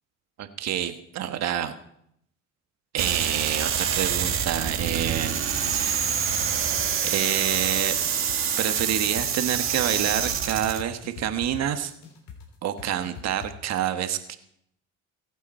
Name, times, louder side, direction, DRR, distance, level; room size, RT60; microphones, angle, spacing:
voice 1, 0.4-1.7 2.9-5.4 5.7-6.5 7.0-7.9 8.6-11.9 12.6-14.4, right 10 dB, 60° right, 9 dB, 1.4 m, -28 dB
sound 1, 3.0-10.8, right 8 dB, 45° right, 1.8 m, -26 dB
sound 2, 5.5-13.5, left 8 dB, 75° left, 3.4 m, -43 dB
24.5 x 8.3 x 4.3 m, 0.73 s
cardioid pair, 100°, 30 cm